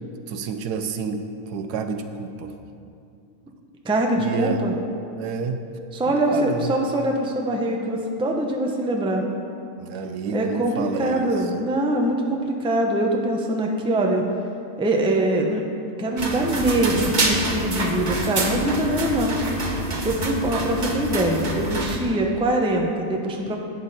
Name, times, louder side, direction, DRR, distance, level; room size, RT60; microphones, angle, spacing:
voice 1, 0.3-2.5 4.2-4.6 5.2-5.6 6.1-6.7 9.8-11.6, right 5 dB, 85° right, 7 dB, 1.3 m, -29 dB
voice 2, 3.8-4.7 5.9-9.2 10.3-14.2 14.8-15.6 16.0-19.4 20.0-23.6, right 1 dB, 5° right, 1 dB, 0.5 m, -23 dB
sound 1, 16.2-22.0, right 2 dB, 35° right, 0.9 m, -26 dB
11.5 x 8.6 x 4.2 m, 2.5 s
omnidirectional pair, 1.7 m